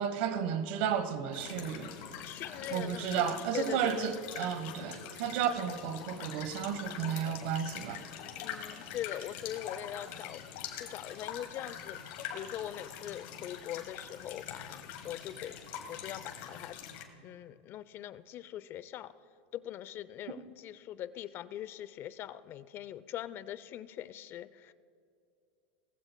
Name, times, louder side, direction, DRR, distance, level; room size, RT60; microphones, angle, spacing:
voice 1, 0.0-1.9 2.7-8.0 20.3-20.4, right 8 dB, 65° right, 10 dB, 1.1 m, -33 dB
sound 1, 1.3-17.0, left 9 dB, 60° left, 2.1 m, -44 dB
voice 2, 2.2-4.1 8.4-10.4 10.8-12.0 12.3-15.6 15.9-16.8 17.2-19.1 19.5-24.7, left 11 dB, 40° left, 16 dB, 0.5 m, -42 dB
19.5 x 15.0 x 2.2 m, 2.5 s
supercardioid pair, 130°, 6 cm